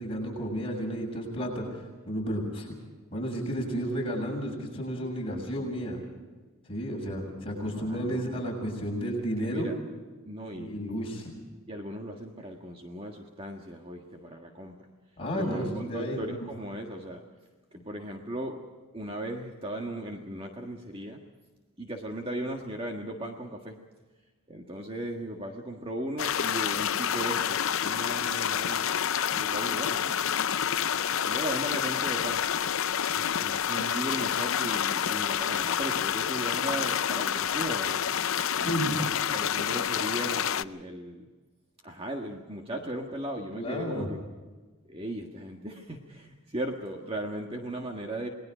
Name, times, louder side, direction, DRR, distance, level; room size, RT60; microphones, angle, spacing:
voice 1, 0.0-2.7 3.1-6.0 6.7-9.7 10.5-11.3 15.2-16.5 38.6-39.0 43.5-44.1, equal, 25° left, -1 dB, 6.9 m, -32 dB
voice 2, 7.5-8.4 9.1-9.2 9.4-9.8 10.2-10.7 11.7-14.9 15.3-17.2 17.7-18.6 18.9-21.2 21.8-23.8 24.5-28.9 29.3-30.3 30.9-32.4 33.1-38.1 38.6-41.3 41.8-44.2 44.8-48.3, right 1 dB, 25° right, 2 dB, 1.6 m, -37 dB
sound 1, 26.2-40.6, left 8 dB, 60° left, 0.6 m, -28 dB
29.0 x 20.5 x 5.1 m, 1.3 s
head